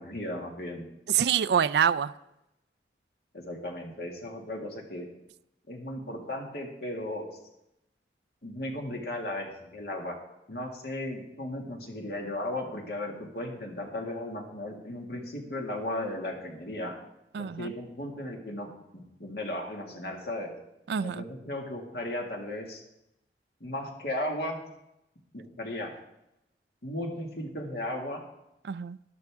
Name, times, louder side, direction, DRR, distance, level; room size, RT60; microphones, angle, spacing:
voice 1, 0.0-0.9 3.3-5.1 5.7-7.3 8.4-10.2 10.5-17.0 17.4-20.5 21.0-22.8 23.6-24.6 25.3-25.9 26.8-28.2, left 1 dB, 65° left, 1 dB, 2.1 m, -36 dB
voice 2, 1.1-2.1 17.3-17.7 20.9-21.2 28.6-29.0, right 8 dB, 70° right, 18 dB, 0.3 m, -26 dB
12.5 x 12.0 x 3.6 m, 0.87 s
head